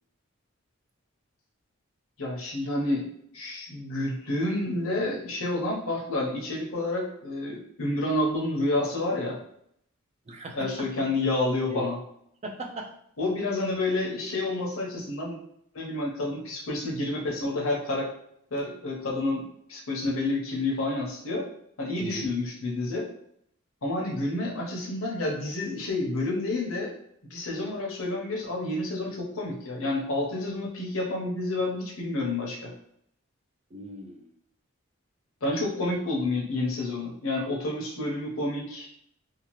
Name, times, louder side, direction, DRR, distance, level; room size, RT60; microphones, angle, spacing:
voice 1, 2.2-9.4 10.5-12.0 13.2-15.4 15.7-18.1 18.5-21.5 21.8-23.1 23.8-26.9 27.3-32.7 35.4-38.9, left 2 dB, 80° left, -2 dB, 0.8 m, -29 dB
voice 2, 10.3-10.9 11.7-11.9 12.4-12.9 22.0-22.4 33.7-34.3, right 1 dB, 30° right, 4 dB, 0.3 m, -38 dB
2.8 x 2.3 x 3.0 m, 0.71 s
head